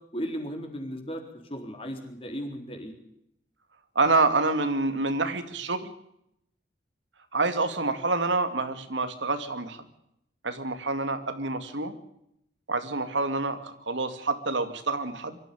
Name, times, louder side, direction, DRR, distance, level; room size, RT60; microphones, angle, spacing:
voice 1, 0.1-1.2 1.5-2.9, equal, 30° left, 4 dB, 3.9 m, -35 dB
voice 2, 4.0-5.9 7.3-9.8 10.4-12.0 12.7-15.4, right 3 dB, 80° right, 9 dB, 2.3 m, -27 dB
24.0 x 13.5 x 8.6 m, 0.78 s
head